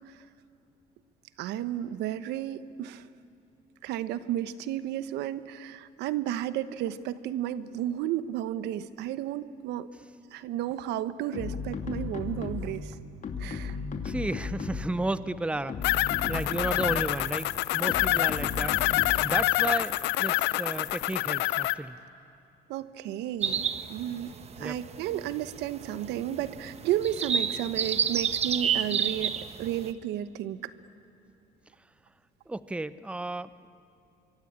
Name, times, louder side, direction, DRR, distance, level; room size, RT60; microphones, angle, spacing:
voice 1, 1.4-3.1 3.8-9.9 10.3-13.0 13.4-13.8 22.7-24.3 24.6-30.7, right 11 dB, 85° right, 14 dB, 1.0 m, -33 dB
sound 1, 11.3-12.9 13.2-15.0 15.6-17.2 17.9-19.4, left 5 dB, 45° left, 2.6 m, -35 dB
voice 2, 14.0-16.0 16.3-19.9 20.2-22.0 24.6-24.8 32.5-33.7, right 2 dB, 5° right, 15 dB, 0.7 m, -33 dB
sound 2, 15.8-21.7, left 17 dB, 90° left, 0.7 m, -27 dB
sound 3, 23.4-29.9, right 7 dB, 40° right, 1.2 m, -31 dB
25.0 x 24.0 x 8.7 m, 2.8 s
cardioid pair, 110°, 17 cm